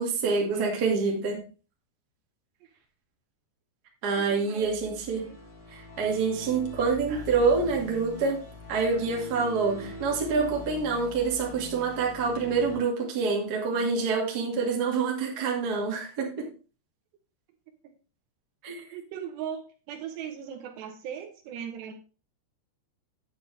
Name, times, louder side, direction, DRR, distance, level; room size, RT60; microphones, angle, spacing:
voice 1, 0.0-1.4 4.0-5.2 5.7-8.4 8.7-16.5 18.6-18.9, right 4 dB, 50° right, 0 dB, 1.1 m, -27 dB
voice 2, 4.2-5.4 17.8-17.9 18.9-19.6 19.9-21.9, right 8 dB, 75° right, 4 dB, 2.8 m, -39 dB
sound 1, 4.6-12.8, left 3 dB, 50° left, 1.2 m, -43 dB
9.3 x 9.0 x 3.3 m, 0.35 s
omnidirectional pair, 5.6 m